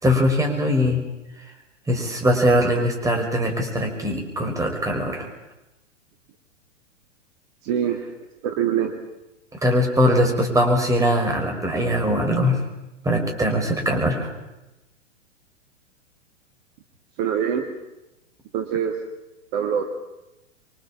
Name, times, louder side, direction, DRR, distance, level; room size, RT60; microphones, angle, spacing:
voice 1, 0.0-1.0 1.9-5.3 9.6-12.6 13.0-14.3, equal, 10° right, 2 dB, 5.5 m, -21 dB
voice 2, 7.6-8.0 8.4-9.0 17.2-17.7 18.5-19.0 19.5-19.8, right 9 dB, 40° right, 5 dB, 2.4 m, -23 dB
26.0 x 24.5 x 7.3 m, 0.97 s
figure-of-eight pair, 105°, 37 cm